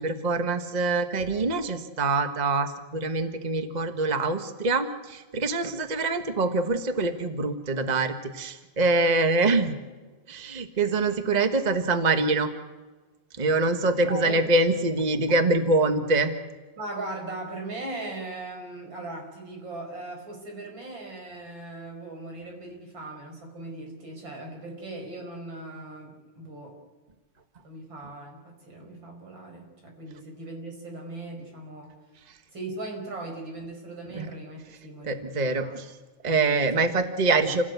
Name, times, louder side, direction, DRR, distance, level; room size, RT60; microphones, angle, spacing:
voice 1, 0.0-9.7 10.3-12.5 13.4-16.3 34.1-34.3 35.0-35.9 36.2-37.6, right 3 dB, 90° right, 7 dB, 0.3 m, -24 dB
voice 2, 13.8-14.5 16.8-26.8 27.6-31.9 32.5-35.8 36.7-36.9, right 2 dB, 40° right, 2 dB, 5.9 m, -39 dB
28.0 x 18.0 x 8.2 m, 1.3 s
omnidirectional pair, 3.3 m